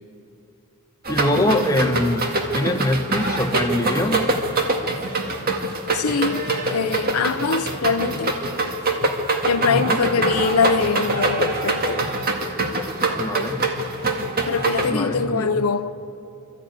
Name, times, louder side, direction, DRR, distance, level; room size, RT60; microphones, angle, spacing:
sound 1, 1.0-14.9, right 2 dB, 45° right, 1.9 m, -24 dB
voice 1, 1.1-2.2 2.5-4.2 9.7-10.0 13.2-13.6 14.9-15.6, left 1 dB, 15° left, 1.1 m, -23 dB
voice 2, 5.9-6.4 6.7-8.3 9.5-12.1 14.5-15.9, left 5 dB, 80° left, 0.7 m, -23 dB
24.5 x 13.5 x 9.3 m
head